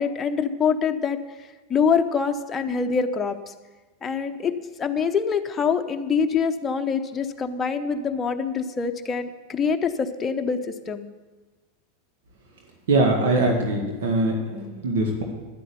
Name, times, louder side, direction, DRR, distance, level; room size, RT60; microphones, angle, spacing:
voice 1, 0.0-3.5 4.0-11.1, left 6 dB, 25° left, 5 dB, 0.9 m, -25 dB
voice 2, 12.9-15.2, right 2 dB, 75° right, 1 dB, 1.8 m, -22 dB
11.0 x 8.4 x 6.9 m, 1.2 s
hypercardioid pair, 100°, 0 cm